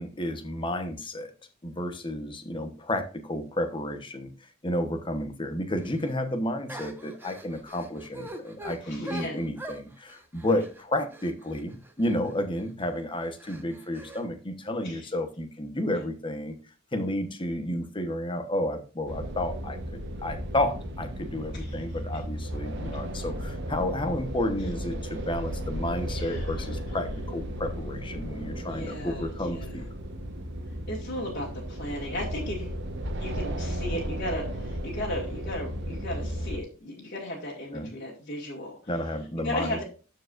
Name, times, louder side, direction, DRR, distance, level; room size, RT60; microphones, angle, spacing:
voice 1, 0.0-1.3 1.6-4.3 4.6-16.6 16.9-29.9 37.7-37.9 38.9-39.8, left 1 dB, 25° left, 7 dB, 1.0 m, -31 dB
sound 1, 5.8-6.1 6.7-12.3 12.8-13.0 13.4-14.2, equal, 10° right, 1.2 m, -43 dB
voice 2, 8.8-9.4 10.4-10.6 14.8-15.1 15.9-16.0 21.5-21.8 26.2-27.0 28.7-29.7 30.9-32.8 33.2-38.8 39.4-39.8, left 1 dB, 45° left, -4 dB, 2.0 m, -36 dB
sound 2, 19.1-36.6, equal, 60° right, 1.1 m, -35 dB
13.0 x 4.8 x 2.5 m, 0.35 s
head